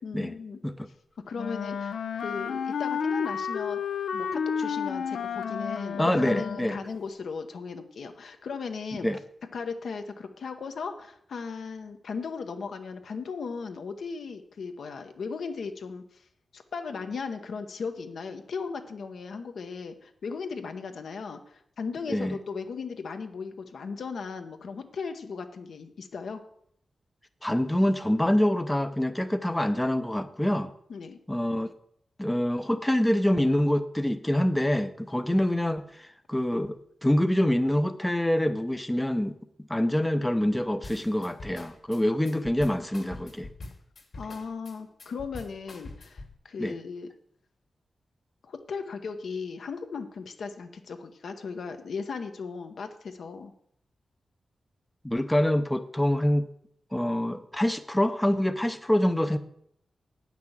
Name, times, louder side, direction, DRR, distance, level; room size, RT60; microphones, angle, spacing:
voice 1, 0.0-0.6 1.3-3.8 4.1-9.1 9.5-16.2 16.5-26.4 30.9-31.2 44.2-47.1 48.4-53.5, left 5 dB, 75° left, 7 dB, 1.0 m, -37 dB
Wind instrument woodwind instrument, 1.3-6.9, left 7 dB, 90° left, 0.5 m, -31 dB
voice 2, 6.0-6.8 9.0-9.2 22.1-22.4 27.4-30.7 31.3-31.7 32.2-39.3 39.7-43.5 46.6-46.7 55.0-56.5 56.9-59.4, left 1 dB, 10° left, 9 dB, 0.5 m, -25 dB
sound 1, 40.8-46.3, left 2 dB, 60° left, 2.2 m, -44 dB
9.1 x 6.0 x 7.2 m, 0.70 s
wide cardioid pair, 125°, 0 cm